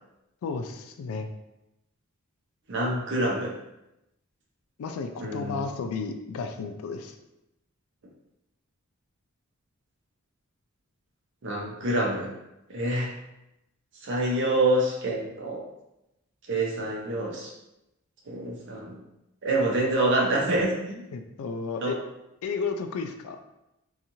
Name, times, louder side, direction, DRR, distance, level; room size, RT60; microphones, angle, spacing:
voice 1, 0.4-1.3 4.8-7.2 21.1-22.0 22.4-23.4, left 4 dB, 80° left, 6 dB, 0.3 m, -33 dB
voice 2, 2.7-3.5 5.2-5.7 11.4-12.3 12.7-13.1 14.0-15.6 16.5-17.5 18.3-19.0 19.4-21.0 21.8-22.0, right 1 dB, 55° right, -2 dB, 0.6 m, -26 dB
2.9 x 2.3 x 2.6 m, 0.90 s
head